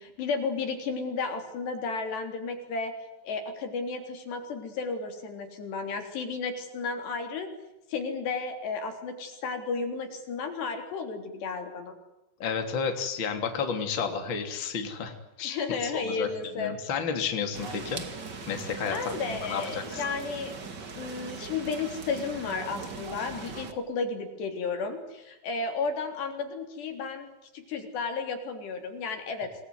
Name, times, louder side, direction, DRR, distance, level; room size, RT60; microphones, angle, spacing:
voice 1, 0.0-2.9 3.2-7.5 7.9-11.9 15.4-16.7 18.8-20.6 20.9-27.3 27.5-29.5, left 4 dB, 75° left, 5 dB, 5.8 m, -33 dB
voice 2, 12.4-15.1 15.4-15.6 15.9-16.3 16.6-18.0 18.5-19.0 19.3-20.0, left 6 dB, 30° left, 5 dB, 3.3 m, -31 dB
sound 1, 17.5-23.7, right 4 dB, 35° right, 1.9 m, -40 dB
27.0 x 20.5 x 9.6 m, 0.94 s
omnidirectional pair, 4.8 m